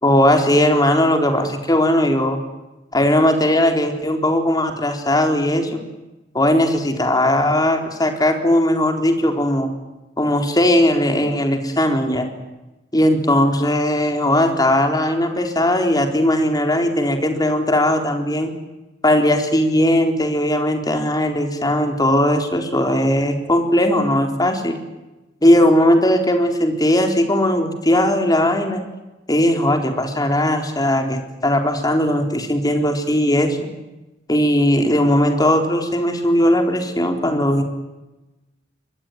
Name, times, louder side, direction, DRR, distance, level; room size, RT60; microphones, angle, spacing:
voice 1, 0.0-2.4 2.9-5.8 6.3-9.7 10.2-12.3 12.9-18.5 19.0-24.8 25.4-28.8 29.3-33.7 34.3-37.6, left 1 dB, 20° left, 4 dB, 4.0 m, -18 dB
24.5 x 21.5 x 9.4 m, 1.0 s
head